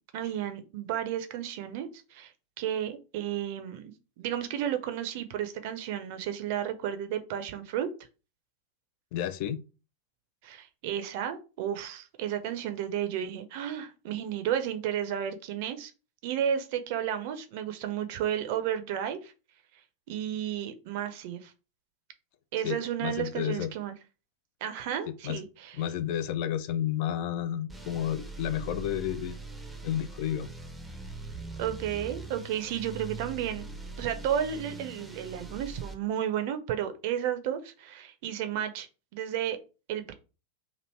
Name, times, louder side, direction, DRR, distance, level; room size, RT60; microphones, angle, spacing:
voice 1, 0.1-2.3 2.6-3.9 4.2-7.9 10.4-15.9 16.2-19.3 20.1-21.5 22.5-23.9 24.6-25.8 31.6-33.7 34.0-38.9 39.1-39.6 39.9-40.1, right 10 dB, 50° right, 0.6 m, -32 dB
voice 2, 9.1-9.6 22.6-23.7 25.1-25.4 25.8-29.4 29.8-30.5, left 10 dB, 45° left, 0.4 m, -31 dB
sound 1, 27.7-35.9, right 3 dB, 5° right, 0.6 m, -42 dB
3.0 x 2.8 x 4.1 m
figure-of-eight pair, 90°, 0 cm